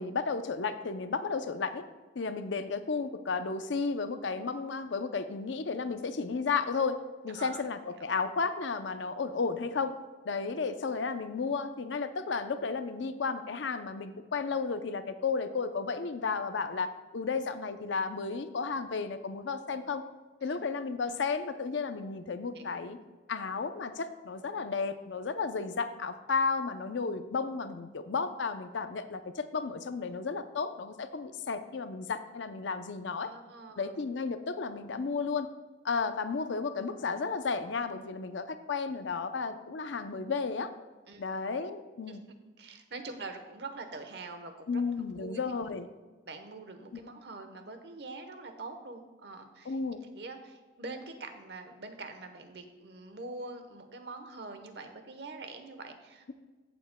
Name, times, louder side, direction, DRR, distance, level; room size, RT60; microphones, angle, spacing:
voice 1, 0.0-1.8 2.1-7.0 7.2-9.9 10.2-20.0 20.4-23.0 23.3-33.3 33.8-35.5 35.8-40.7 41.2-42.2 44.7-45.9 49.7-50.0, left 4 dB, 75° left, 10 dB, 0.6 m, -33 dB
voice 2, 7.3-7.7 8.0-8.1 20.4-20.6 22.5-22.8 33.2-33.9 41.1-41.2 42.1-42.2 42.6-44.8 45.2-45.4 46.3-49.8 50.1-56.3, right 3 dB, 60° right, 7 dB, 1.0 m, -44 dB
15.0 x 7.1 x 2.2 m, 1.3 s
head